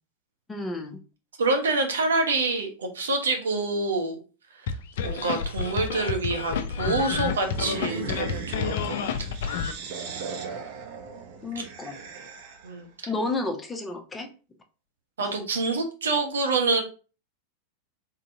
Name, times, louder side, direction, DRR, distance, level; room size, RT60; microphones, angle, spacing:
voice 1, 0.5-1.0 11.4-12.0 13.1-14.3, left 2 dB, 10° left, 4 dB, 0.8 m, -31 dB
voice 2, 1.4-4.2 5.0-8.8 9.2-9.6 12.6-12.9 15.2-16.8, right 3 dB, 65° right, 3 dB, 1.0 m, -26 dB
sound 1, 4.7-9.7, left 6 dB, 55° left, 0.5 m, -29 dB
sound 2, 7.3-12.8, right 5 dB, 45° right, 0.8 m, -38 dB
3.8 x 3.8 x 2.7 m, 0.35 s
figure-of-eight pair, 90°, 0 cm